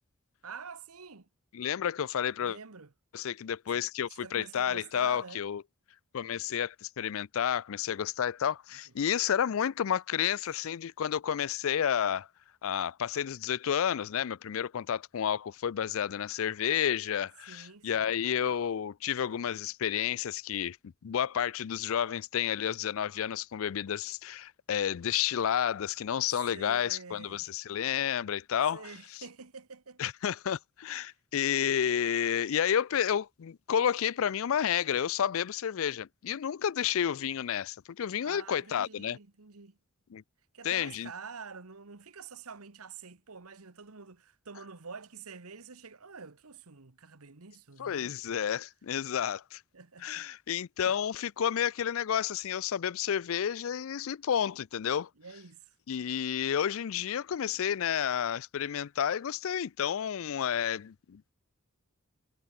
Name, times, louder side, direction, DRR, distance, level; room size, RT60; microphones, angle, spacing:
voice 1, 0.4-1.3 2.4-2.9 3.7-3.8 4.2-5.4 17.5-18.1 26.5-27.5 28.7-30.0 38.2-39.8 40.5-48.1 49.7-50.3 50.8-51.0 55.2-55.7, right 5 dB, 80° right, 1.4 m, -47 dB
voice 2, 1.5-2.6 3.1-5.6 6.1-12.3 12.6-20.8 21.0-28.9 30.0-39.2 40.1-40.2 40.6-41.1 47.8-49.6 50.0-55.1 55.9-61.3, left 9 dB, 65° left, 0.4 m, -31 dB
head